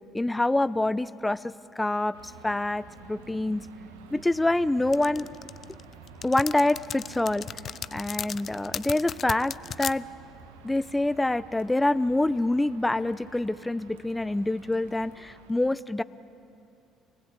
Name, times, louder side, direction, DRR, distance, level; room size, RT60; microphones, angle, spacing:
voice 1, 0.1-2.2 2.4-3.7 4.1-5.3 6.2-7.5 7.9-10.0 10.6-16.0, left 2 dB, 10° left, 15 dB, 0.8 m, -26 dB
sound 1, 2.1-15.5, right 5 dB, 75° right, 1.6 m, -50 dB
sound 2, 4.9-9.9, left 8 dB, 45° left, 0.6 m, -35 dB
29.5 x 20.0 x 8.5 m, 2.6 s
figure-of-eight pair, 55°, 0 cm